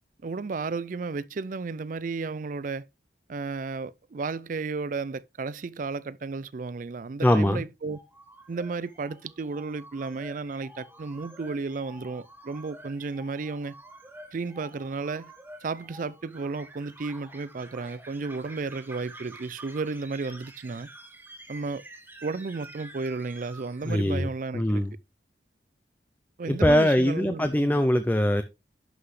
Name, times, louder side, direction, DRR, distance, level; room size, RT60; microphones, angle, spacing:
voice 1, 0.2-2.9 3.3-8.0 8.5-13.7 14.3-15.3 15.6-20.9 21.5-21.8 22.2-24.8 26.4-27.8, right 4 dB, 45° right, 0.4 m, -33 dB
voice 2, 7.2-7.6 23.9-24.3 24.5-24.9 26.5-28.4, equal, 10° left, 0.5 m, -22 dB
sound 1, 7.8-24.4, right 1 dB, 10° right, 1.2 m, -49 dB
11.0 x 5.9 x 3.2 m
head